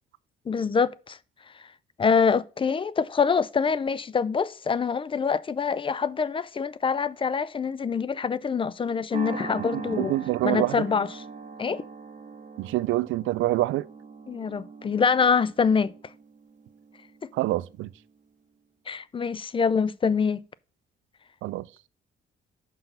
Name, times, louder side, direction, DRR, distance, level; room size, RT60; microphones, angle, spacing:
voice 1, 0.5-1.2 2.0-10.2 10.4-11.2 11.6-11.8 14.3-15.9 17.2-17.3 18.9-20.4, left 5 dB, 25° left, 0.4 m, -25 dB
sound 1, 9.1-17.6, right 5 dB, 40° right, 1.5 m, -41 dB
voice 2, 9.7-10.9 12.6-13.9 17.3-17.9 21.4-21.7, right 17 dB, 85° right, 0.4 m, -26 dB
5.8 x 5.7 x 5.4 m
cardioid pair, 90°, 20 cm